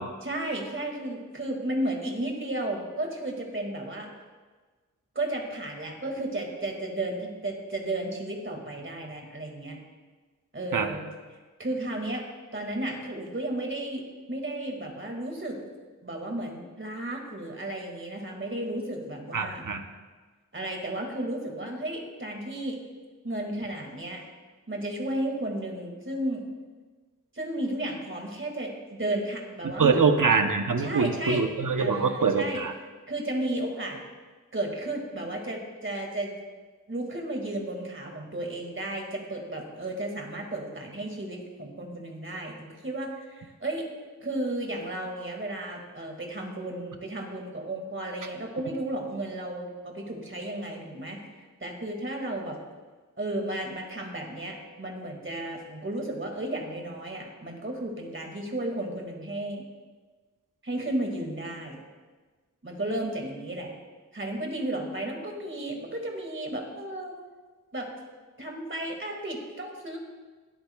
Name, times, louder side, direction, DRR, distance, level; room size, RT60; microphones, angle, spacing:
voice 1, 0.2-4.1 5.2-9.8 10.5-11.1 11.6-12.2 12.5-14.0 14.3-15.6 16.0-19.6 20.5-22.8 23.2-24.2 24.7-26.5 27.3-30.1 30.8-31.5 31.8-32.6 33.1-34.0 34.5-36.3 36.9-43.9 44.2-51.2 51.6-52.6 53.2-59.6 60.6-61.8 62.6-63.7 64.1-67.1 67.7-67.9 68.4-70.0, right 1 dB, 40° right, 1 dB, 2.1 m, -33 dB
voice 2, 19.3-19.8 29.8-32.7, right 5 dB, 85° right, 6 dB, 0.9 m, -24 dB
22.0 x 8.7 x 2.3 m, 1.4 s
wide cardioid pair, 70°, 31 cm